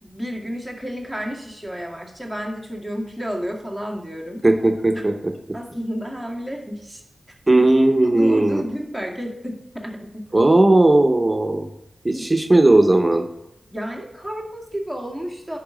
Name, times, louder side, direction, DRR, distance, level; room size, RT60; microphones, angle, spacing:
voice 1, 0.0-4.4 4.9-5.0 5.5-7.6 8.0-10.3 12.1-12.2 13.7-15.6, equal, 10° left, 0 dB, 2.0 m, -31 dB
voice 2, 4.4-5.3 7.5-8.6 10.3-11.7 12.0-13.2, right 2 dB, 20° right, 5 dB, 0.9 m, -16 dB
10.5 x 4.9 x 5.1 m, 0.84 s
wide cardioid pair, 70°, 0 cm